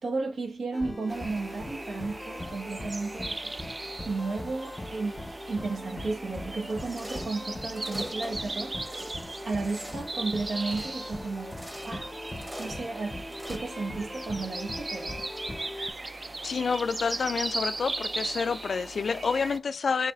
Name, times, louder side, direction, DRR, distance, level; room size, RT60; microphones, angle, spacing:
voice 1, 0.0-3.5 4.0-12.1 12.6-13.2 13.5-15.3, right 3 dB, 80° right, 1.2 m, -34 dB
sound 1, 0.7-15.9, left 1 dB, 20° left, 0.6 m, -41 dB
sound 2, 1.1-19.6, right 2 dB, 30° right, 0.4 m, -38 dB
sound 3, 6.9-7.4 7.7-8.4 8.7-9.1 9.6-10.1 10.6-11.0 11.5-12.0 12.3-12.8 13.3-13.6, equal, 10° right, 1.0 m, -43 dB
voice 2, 16.4-20.1, left 5 dB, 70° left, 0.3 m, -28 dB
4.8 x 3.4 x 2.3 m
wide cardioid pair, 115°, 0 cm